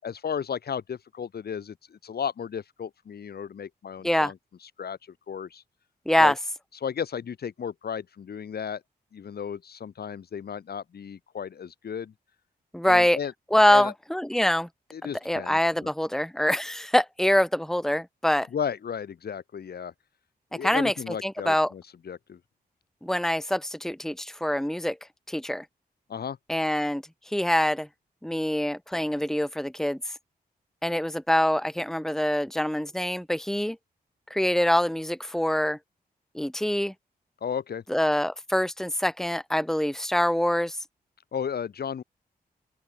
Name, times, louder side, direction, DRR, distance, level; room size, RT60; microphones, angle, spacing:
voice 1, 0.0-4.4 4.6-5.0 5.3-5.6 6.2-6.3 6.8-8.8 9.1-12.1 12.9-13.3 13.7-13.9 14.9-15.9 18.5-19.9 20.5-22.4 26.1-26.4 37.4-37.8 41.3-42.0, left 7 dB, 75° left, 7.2 m, -34 dB
voice 2, 12.7-13.2 13.5-14.7 15.3-18.5 20.6-20.9 21.2-21.7 23.0-25.0 25.3-25.6 26.5-27.9 28.2-30.0 30.8-33.8 34.3-35.8 36.3-36.9 37.9-40.8, left 1 dB, 5° left, 2.1 m, -24 dB
open air
cardioid pair, 75°, 16 cm